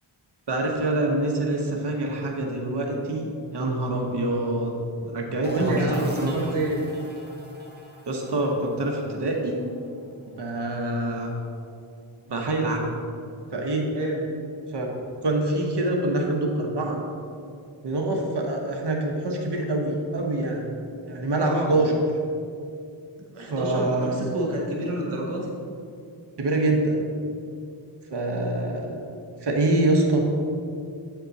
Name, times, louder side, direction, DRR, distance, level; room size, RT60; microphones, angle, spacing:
voice 1, 0.5-4.7 5.0-6.3 8.1-9.6 10.3-11.3 12.3-13.0 13.5-13.9 14.7-14.9 15.2-17.0 17.8-20.7 21.0-21.9 23.4-24.2 26.4-27.0 28.1-29.0 29.4-30.3, right 2 dB, 55° right, 1 dB, 1.1 m, -25 dB
sound 1, 5.4-11.0, right 1 dB, 20° right, 1.2 m, -38 dB
voice 2, 5.5-6.8 13.9-14.2 21.4-21.8 23.3-25.5, right 1 dB, 90° right, -1 dB, 1.1 m, -28 dB
8.2 x 4.3 x 4.0 m, 2.4 s
cardioid pair, 50°, 49 cm